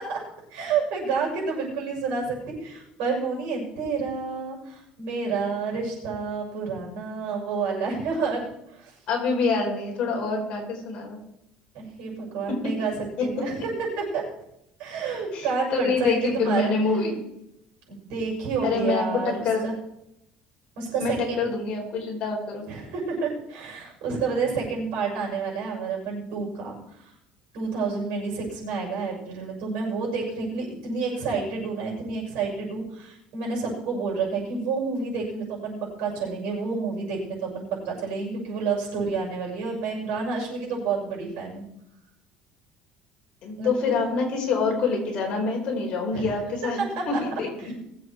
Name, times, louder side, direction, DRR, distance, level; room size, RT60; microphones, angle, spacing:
voice 1, 0.5-8.5 8.7-8.9 11.7-14.2 14.8-17.2 17.9-19.7 20.8-21.4 22.7-27.1 27.5-41.6 43.6-44.0 46.1-46.3 46.9-47.2 47.6-47.7, right 4 dB, 75° right, -2 dB, 6.8 m, -29 dB
voice 2, 9.1-11.2 15.3-17.1 18.6-19.6 21.0-22.7 43.4-46.8 47.1-47.7, left 4 dB, 40° left, -1 dB, 4.5 m, -26 dB
20.5 x 8.0 x 4.6 m, 0.80 s
cardioid pair, 175°, 3 cm